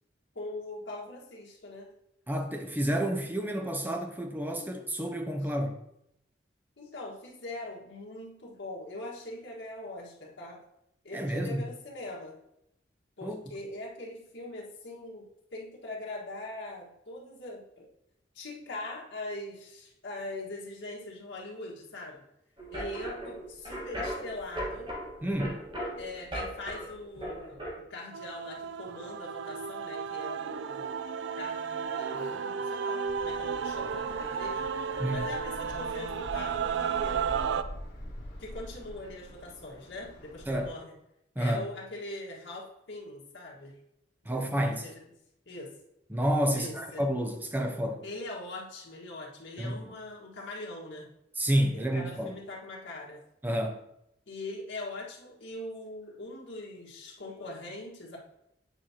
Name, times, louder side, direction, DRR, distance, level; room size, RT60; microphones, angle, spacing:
voice 1, 0.3-1.9 6.8-10.6 11.0-12.4 13.2-17.9 18.3-22.2 22.7-24.9 26.0-30.9 31.4-37.3 38.4-40.9 41.4-43.8 44.3-45.0 45.4-45.7 46.5-47.0 48.0-51.1 51.7-53.2 54.3-58.2, left 2 dB, 85° left, 1.6 m, -42 dB
voice 2, 2.3-5.8 11.1-11.6 13.2-13.4 25.2-25.6 35.0-35.3 40.5-40.7 41.4-41.7 44.3-44.9 46.1-48.0 49.6-49.8 51.4-52.4 53.4-53.8, equal, 10° right, 0.6 m, -30 dB
sound 1, 22.6-27.7, equal, 25° right, 1.4 m, -38 dB
Male singing / Female singing / Musical instrument, 28.1-37.6, right 6 dB, 75° right, 0.4 m, -33 dB
sound 2, 33.0-40.7, left 1 dB, 60° left, 1.8 m, -45 dB
8.9 x 4.6 x 2.8 m
head